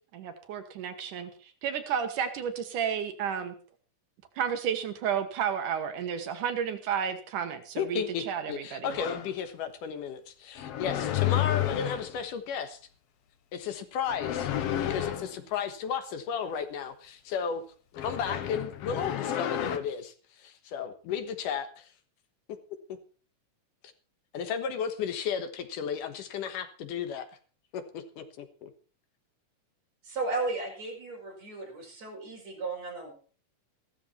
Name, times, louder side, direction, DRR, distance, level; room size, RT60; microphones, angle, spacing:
voice 1, 0.1-3.5 4.4-9.0, right 8 dB, 75° right, 7 dB, 2.8 m, -32 dB
voice 2, 7.8-12.8 13.5-14.5 14.8-17.6 17.9-21.9 24.3-27.3 27.7-28.7, left 7 dB, 80° left, 9 dB, 2.9 m, -34 dB
sound 1, 8.9-9.3 10.6-12.2 14.1-15.3 18.0-19.8, left 12 dB, 65° left, 1.6 m, -31 dB
voice 3, 30.0-33.1, right 3 dB, 55° right, 0 dB, 6.3 m, -35 dB
15.0 x 13.0 x 4.3 m, 0.39 s
omnidirectional pair, 3.7 m